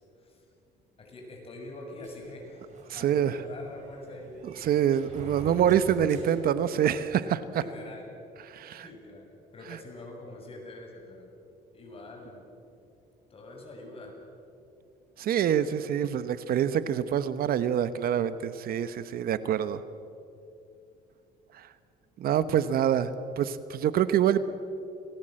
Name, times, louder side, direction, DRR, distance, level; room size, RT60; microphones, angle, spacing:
voice 1, 1.0-4.3 7.5-8.2 8.8-9.3 9.5-11.3 11.7-12.4 13.3-14.1, left 2 dB, 35° left, 1 dB, 7.6 m, -44 dB
sound 1, 2.0-7.3, right 2 dB, 45° right, 7.2 m, -47 dB
voice 2, 2.9-3.4 4.4-7.4 8.5-8.9 9.7-9.8 15.2-19.8 21.5-21.7 22.2-24.4, right 9 dB, 60° right, 13 dB, 1.1 m, -26 dB
29.5 x 19.5 x 7.7 m, 2.7 s
cardioid pair, 110°, 17 cm